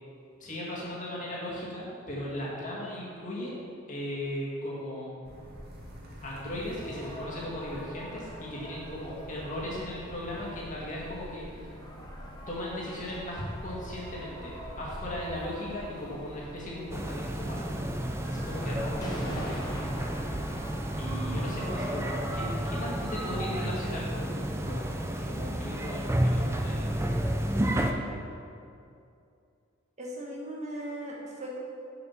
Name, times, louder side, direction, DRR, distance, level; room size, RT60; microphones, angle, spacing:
voice 1, 0.4-3.6 3.9-5.1 6.2-11.7 12.5-17.7 18.2-19.6 21.0-24.8 25.1-26.9 27.7-28.1, left 1 dB, 40° left, -6 dB, 2.1 m, -37 dB
sound 1, 5.2-21.5, equal, 50° right, 1.7 m, -46 dB
sound 2, 6.7-23.3, equal, 20° left, 1.0 m, -44 dB
sound 3, 16.9-27.9, right 1 dB, 15° right, 0.5 m, -31 dB
voice 2, 30.0-31.6, right 1 dB, 35° right, -2 dB, 1.5 m, -38 dB
7.2 x 6.8 x 5.8 m, 2.5 s
head